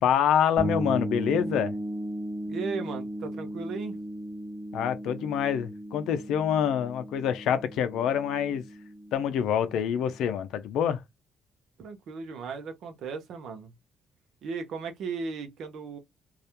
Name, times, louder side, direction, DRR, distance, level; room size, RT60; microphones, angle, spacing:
voice 1, 0.0-1.8 4.7-8.6 9.1-11.0, left 8 dB, 85° left, 0.4 m, -26 dB
sound 1, 0.6-10.2, right 1 dB, 30° right, 0.8 m, -36 dB
voice 2, 2.4-4.0 11.8-13.7 14.4-16.0, right 5 dB, 75° right, 0.6 m, -36 dB
2.3 x 2.1 x 2.8 m
cardioid pair, 90°, 0 cm